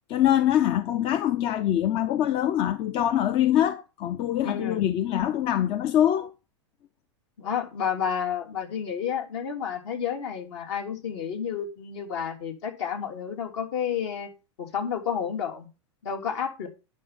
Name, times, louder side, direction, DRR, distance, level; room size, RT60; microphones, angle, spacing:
voice 1, 0.1-6.3, left 11 dB, 35° left, 0.6 m, -24 dB
voice 2, 4.4-4.8 7.4-14.3 14.6-15.7 16.0-16.7, left 8 dB, 65° left, 3.2 m, -30 dB
10.5 x 5.7 x 5.6 m
hypercardioid pair, 110°, 15 cm